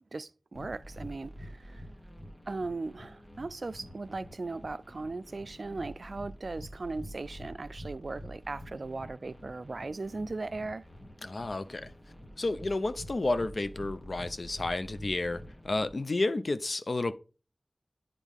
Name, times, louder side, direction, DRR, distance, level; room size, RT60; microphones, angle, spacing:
voice 1, 0.1-1.9 2.5-10.9, right 3 dB, 70° right, 0.3 m, -38 dB
sound 1, 0.5-15.9, equal, 25° left, 1.4 m, -47 dB
voice 2, 11.2-11.9 12.4-17.1, left 2 dB, 65° left, 0.5 m, -31 dB
10.0 x 3.6 x 3.6 m
wide cardioid pair, 65°, 0 cm